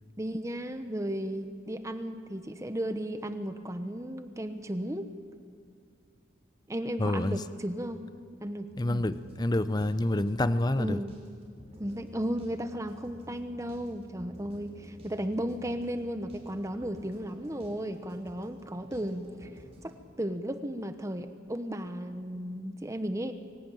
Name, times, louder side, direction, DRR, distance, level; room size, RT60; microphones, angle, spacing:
voice 1, 0.2-5.1 6.7-8.0 8.4-9.0 10.8-11.2 11.8-19.5 19.8-19.9 20.2-23.3, equal, 15° right, 8 dB, 0.9 m, -35 dB
voice 2, 7.0-7.4 8.8-11.0, left 1 dB, 20° left, 13 dB, 0.6 m, -27 dB
sound 1, 8.7-20.0, equal, 35° right, 5.4 m, -52 dB
24.0 x 17.0 x 9.2 m, 2.2 s
head